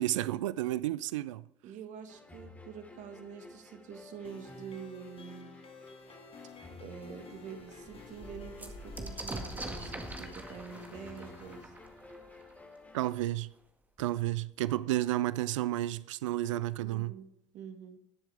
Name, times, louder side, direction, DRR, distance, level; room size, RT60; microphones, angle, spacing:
voice 1, 0.0-1.4 12.9-13.5 14.0-17.1, right 15 dB, 75° right, 0.4 m, -31 dB
voice 2, 1.6-5.6 6.8-11.7 16.8-17.3 17.5-18.0, right 7 dB, 50° right, 1.8 m, -46 dB
sound 1, 2.1-13.1, left 2 dB, 10° left, 2.7 m, -53 dB
sound 2, 4.2-11.6, left 5 dB, 35° left, 1.7 m, -52 dB
sound 3, 6.6-6.7 7.1-7.2 7.5-13.0 14.0-14.1 14.3-15.0, right 1 dB, 10° right, 1.8 m, -44 dB
19.0 x 7.2 x 3.5 m
hypercardioid pair, 70°, 16 cm